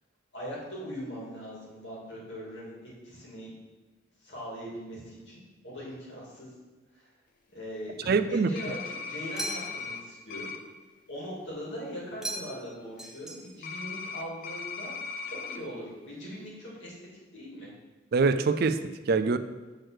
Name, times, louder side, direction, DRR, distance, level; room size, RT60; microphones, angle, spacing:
voice 1, 0.3-3.5 4.2-6.5 6.9-7.1 7.5-10.5 11.1-14.9 15.3-16.9 17.3-17.7, equal, 70° left, -5 dB, 2.8 m, -41 dB
voice 2, 8.1-8.5 18.1-19.4, right 4 dB, 55° right, 10 dB, 0.4 m, -24 dB
sound 1, 8.5-10.0 10.3-10.6 13.6-15.6, left 5 dB, 50° left, 0.6 m, -38 dB
sound 2, 9.4-10.0 12.2-12.7 13.0-13.7, right 1 dB, 5° right, 0.7 m, -38 dB
6.3 x 4.6 x 6.5 m, 1.2 s
head